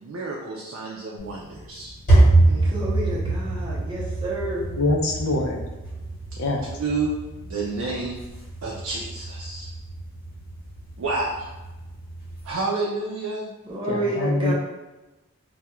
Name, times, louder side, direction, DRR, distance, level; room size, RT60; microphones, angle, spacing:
voice 1, 0.0-1.9 6.8-7.1 7.4-8.2 8.6-9.7 11.0-11.5 12.4-13.5, right 3 dB, 85° right, -3 dB, 0.4 m, -29 dB
sound 1, 1.2-12.5, right 2 dB, 40° left, 1.0 m, -25 dB
voice 2, 2.5-4.6 13.7-14.5, right 1 dB, 25° right, -6 dB, 0.6 m, -29 dB
voice 3, 4.8-5.6 6.4-6.6 13.9-14.5, left 2 dB, 75° left, 1 dB, 0.4 m, -24 dB
2.3 x 2.2 x 2.9 m, 1.1 s
head